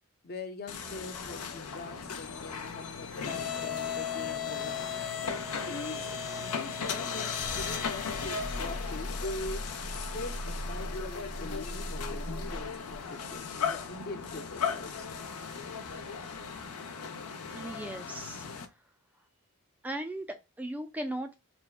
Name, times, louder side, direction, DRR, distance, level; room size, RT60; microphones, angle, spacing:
voice 1, 0.2-4.9 5.6-9.6 10.1-10.4 10.7-15.1, left 2 dB, 45° left, 0.6 m, -43 dB
sound 1, 0.7-18.7, left 5 dB, 90° left, 0.6 m, -36 dB
voice 2, 17.5-18.5 19.8-21.3, right 1 dB, 5° right, 0.3 m, -37 dB
3.4 x 2.2 x 2.3 m
head